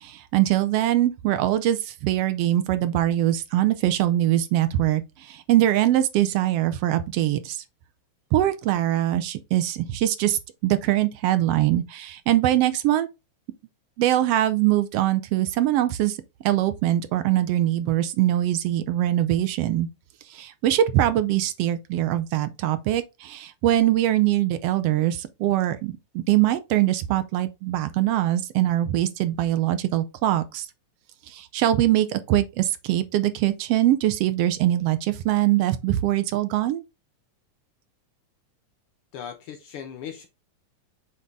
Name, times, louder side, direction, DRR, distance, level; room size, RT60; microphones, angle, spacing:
voice 1, 0.0-7.6 8.3-13.1 14.0-16.2 16.4-19.9 20.3-30.7 31.3-36.8, right 13 dB, 80° right, 1.4 m, -22 dB
voice 2, 39.1-40.3, left 8 dB, 80° left, 1.2 m, -38 dB
7.6 x 4.0 x 3.5 m
omnidirectional pair, 3.4 m